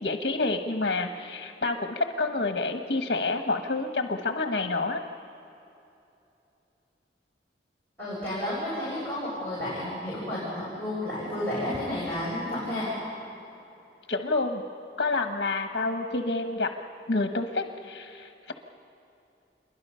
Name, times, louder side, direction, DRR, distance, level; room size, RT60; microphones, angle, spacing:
voice 1, 0.0-5.0 14.1-14.6 15.0-16.7 17.1-18.5, left 3 dB, 65° left, 5 dB, 1.1 m, -28 dB
voice 2, 8.0-12.9, left 1 dB, 10° left, -9 dB, 7.3 m, -31 dB
27.5 x 22.5 x 5.6 m, 2.8 s
head